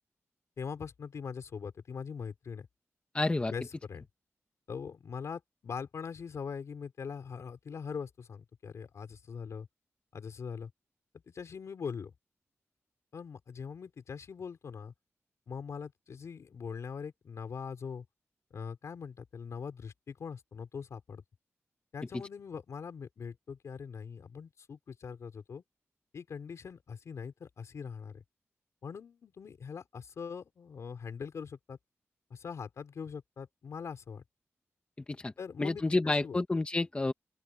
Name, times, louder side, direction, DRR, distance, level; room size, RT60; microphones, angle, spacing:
voice 1, 0.6-2.7 3.5-4.1 4.7-9.7 10.1-10.7 11.3-12.1 13.1-14.9 15.5-18.0 18.5-21.2 21.9-25.6 26.1-28.2 28.8-31.8 32.3-34.2 35.4-36.4, left 6 dB, 80° left, 4.6 m, -42 dB
voice 2, 3.1-3.5 35.1-35.3 35.6-37.1, left 2 dB, 20° left, 1.2 m, -29 dB
open air
wide cardioid pair, 145°, 5 cm